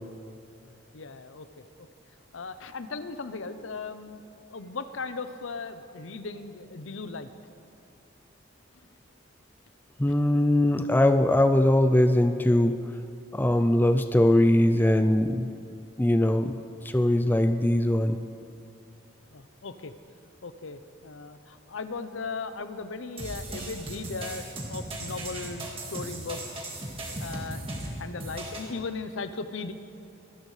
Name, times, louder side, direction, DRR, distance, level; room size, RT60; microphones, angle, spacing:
voice 1, 0.9-1.5 2.3-4.2 4.5-7.3 19.3-19.9 20.4-26.6 27.2-27.6 28.0-29.7, left 4 dB, 85° left, 10 dB, 0.7 m, -37 dB
voice 2, 10.0-12.9 13.3-15.5 16.0-16.6 16.8-18.2, left 1 dB, 10° left, 8 dB, 0.3 m, -21 dB
sound 1, 23.2-28.7, right 1 dB, 30° right, 1.9 m, -37 dB
25.0 x 12.0 x 3.3 m, 2.6 s
head